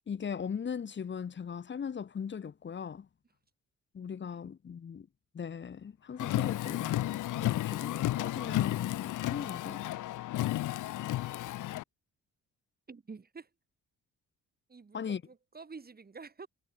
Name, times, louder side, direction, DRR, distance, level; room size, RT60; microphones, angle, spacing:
voice 1, 0.1-3.1 3.9-5.1 5.3-9.8 14.9-15.2, left 7 dB, 40° left, 1.3 m, -39 dB
Car, 6.2-11.8, left 15 dB, 85° left, 2.0 m, -32 dB
voice 2, 12.9-13.5 14.7-16.5, right 4 dB, 30° right, 6.5 m, -48 dB
cardioid pair, 90°, 30 cm